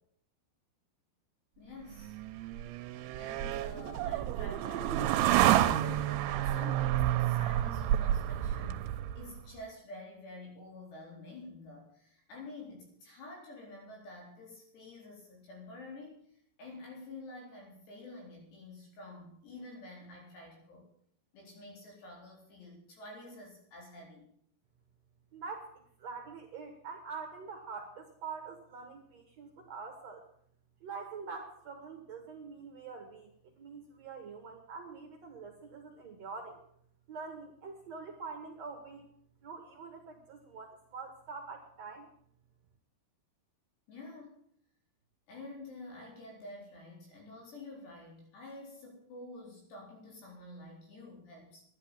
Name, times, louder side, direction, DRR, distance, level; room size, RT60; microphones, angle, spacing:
voice 1, 1.6-2.2 3.2-8.9 9.2-16.2 16.6-20.9 21.3-24.3 43.9-44.4 45.3-51.6, left 2 dB, 85° left, -1 dB, 6.2 m, -49 dB
sound 1, 2.0-9.4, right 13 dB, 85° right, 2.7 m, -29 dB
voice 2, 25.3-25.7 26.0-30.2 30.8-33.3 33.6-36.6 37.1-39.1 39.4-42.1, right 5 dB, 60° right, 4 dB, 1.9 m, -45 dB
11.5 x 10.5 x 7.2 m, 0.66 s
omnidirectional pair, 4.7 m